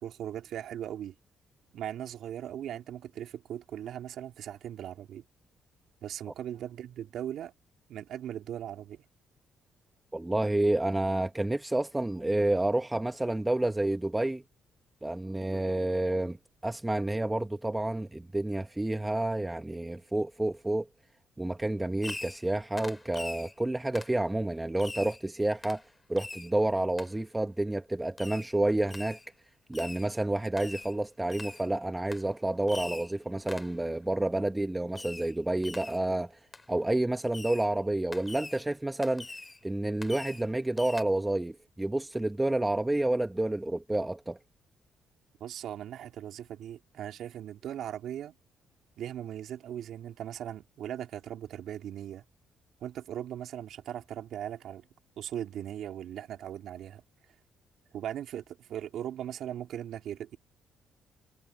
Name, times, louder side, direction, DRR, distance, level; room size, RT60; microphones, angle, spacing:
voice 1, 0.0-1.1 1.7-5.2 6.0-7.5 7.9-9.0 45.4-48.3 49.0-52.2 52.8-54.8 55.2-57.0 57.9-60.4, right 10 dB, 75° right, 3.1 m, -39 dB
voice 2, 10.1-14.4 15.0-16.4 16.6-20.9 21.4-25.8 26.1-29.2 29.7-36.3 36.7-39.3 39.6-44.4, right 1 dB, 10° right, 1.4 m, -29 dB
Fireworks, 22.0-22.5 22.8-23.5 23.9-24.2 24.8-25.2 25.6-25.8 26.2-26.5 27.0-27.1 28.2-28.5 28.9-29.3 29.7-30.1 30.6-30.9 31.3-31.7 32.1-32.3 32.7-33.1 33.5-33.8 34.9-35.3 35.6-36.0 36.5-36.6 37.3-37.7 38.1-38.6 39.0-39.6 40.0-40.5 40.8-41.0, left 3 dB, 20° left, 5.3 m, -43 dB
cardioid pair, 90°, 0 cm